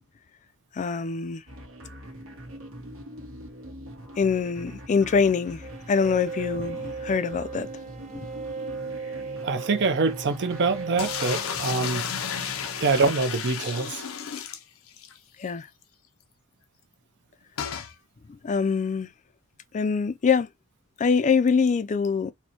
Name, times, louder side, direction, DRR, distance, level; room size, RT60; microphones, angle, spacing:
voice 1, 0.7-1.4 4.2-7.7 13.0-13.1 15.4-15.7 18.3-19.1 19.7-20.5 21.0-22.3, left 5 dB, 35° left, 0.3 m, -24 dB
sound 1, 1.5-13.1, equal, 75° right, 1.2 m, -43 dB
sound 2, 5.6-12.1, right 4 dB, 35° right, 1.0 m, -37 dB
voice 2, 9.4-12.0 12.8-14.1, right 4 dB, 55° right, 0.6 m, -25 dB
sound 3, 11.0-15.2 15.5-15.6 15.8-15.9 17.6-17.9, left 8 dB, 80° left, 0.6 m, -32 dB
4.2 x 2.2 x 2.9 m
head